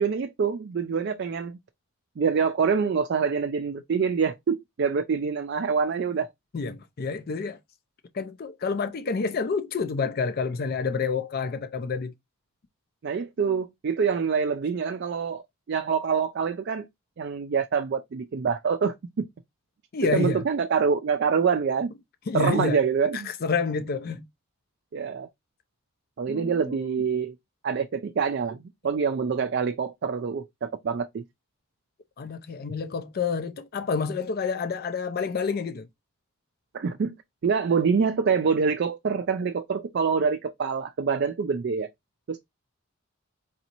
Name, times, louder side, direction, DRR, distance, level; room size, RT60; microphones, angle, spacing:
voice 1, 0.0-1.6 2.2-6.3 13.0-16.9 17.2-18.9 20.1-21.9 22.3-23.3 24.9-25.3 26.2-27.3 27.6-31.2 36.7-37.1 37.4-41.9 42.3-42.4, right 6 dB, 50° right, 0.3 m, -26 dB
voice 2, 6.5-7.6 8.1-12.1 19.9-20.4 22.3-22.8 23.1-24.2 26.3-26.9 32.2-35.9, left 5 dB, 45° left, 0.4 m, -28 dB
3.9 x 2.6 x 2.8 m
head